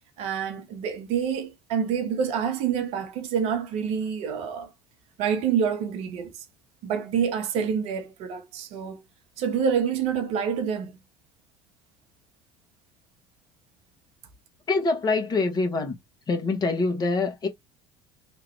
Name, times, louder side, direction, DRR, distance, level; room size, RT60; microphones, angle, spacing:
voice 1, 0.2-4.7 5.2-6.3 6.8-9.0 9.4-11.0, right 7 dB, 60° right, 0.9 m, -27 dB
voice 2, 14.7-16.0 16.3-17.5, left 3 dB, 35° left, 1.1 m, -25 dB
3.0 x 2.4 x 3.1 m
hypercardioid pair, 65°, 12 cm